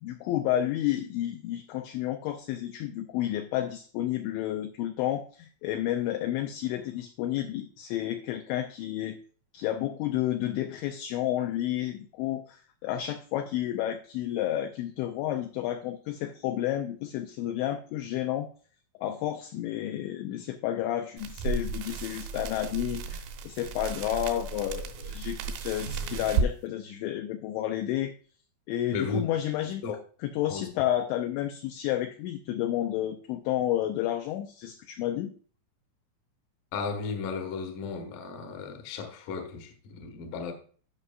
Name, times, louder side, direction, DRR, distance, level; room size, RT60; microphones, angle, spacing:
voice 1, 0.0-9.2 9.5-18.5 19.0-28.1 28.7-29.8 30.2-35.3, left 12 dB, 85° left, 2.6 m, -31 dB
sound 1, 21.2-26.5, right 5 dB, 85° right, 3.6 m, -33 dB
voice 2, 28.9-29.3 29.8-30.0 30.5-30.7 36.7-40.5, left 5 dB, 65° left, 2.2 m, -34 dB
15.5 x 5.5 x 2.4 m
omnidirectional pair, 5.9 m